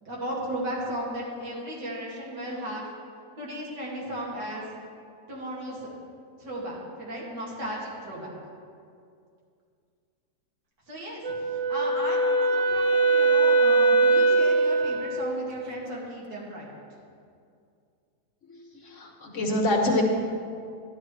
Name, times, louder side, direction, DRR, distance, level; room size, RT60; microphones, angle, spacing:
voice 1, 0.0-2.8 3.4-4.7 5.3-5.9 6.4-8.3 10.9-16.8, right 1 dB, 85° right, -5 dB, 2.9 m, -35 dB
Wind instrument woodwind instrument, 11.2-15.3, right 3 dB, 70° right, 0.3 m, -21 dB
voice 2, 18.5-20.0, left 1 dB, 50° left, 0 dB, 1.3 m, -26 dB
13.0 x 11.0 x 3.2 m, 2.3 s
omnidirectional pair, 1.8 m